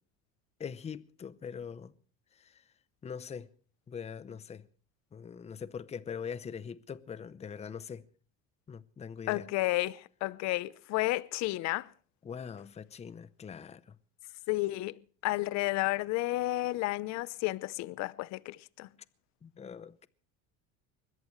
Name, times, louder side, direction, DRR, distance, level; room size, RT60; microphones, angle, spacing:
voice 1, 0.6-1.9 2.4-2.6 3.0-3.5 3.9-4.6 5.1-8.0 8.7-9.5 12.2-13.8 19.4-20.1, left 7 dB, 20° left, 0.8 m, -42 dB
voice 2, 9.3-11.9 14.5-18.9, left 19 dB, 60° left, 0.8 m, -32 dB
21.5 x 20.5 x 3.2 m
supercardioid pair, 115°, 31 cm